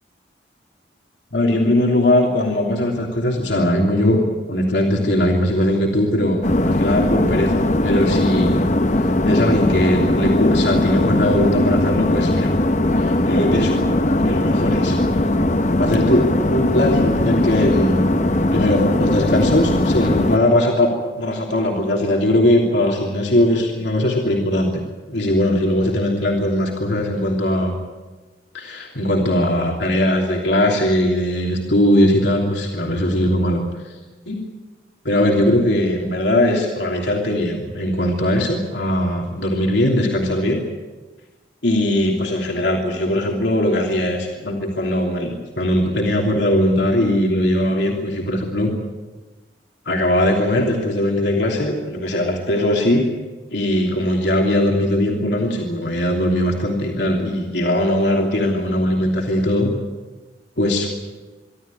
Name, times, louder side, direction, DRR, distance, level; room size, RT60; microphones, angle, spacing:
voice 1, 1.3-4.2 4.5-8.7 9.2-12.5 13.0-15.0 15.8-18.0 18.5-24.8 25.1-27.8 28.5-33.9 34.3-34.4 35.0-40.6 41.6-48.7 49.8-53.1 53.5-59.7 60.6-60.9, left 1 dB, 75° left, 0 dB, 3.1 m, -20 dB
sound 1, 6.4-20.4, left 1 dB, 40° left, 0.9 m, -19 dB
25.0 x 13.0 x 9.8 m, 1.3 s
head